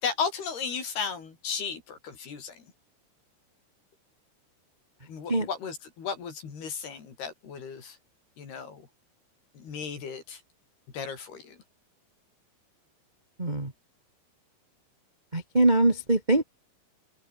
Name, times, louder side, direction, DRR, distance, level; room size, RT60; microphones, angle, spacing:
voice 1, 0.0-2.7 5.1-8.0 8.4-8.9 9.5-10.4 10.9-11.6, left 6 dB, 55° left, 6.3 m, -35 dB
voice 2, 13.4-13.7 15.3-16.4, right 2 dB, 15° right, 1.6 m, -23 dB
open air
omnidirectional pair, 5.7 m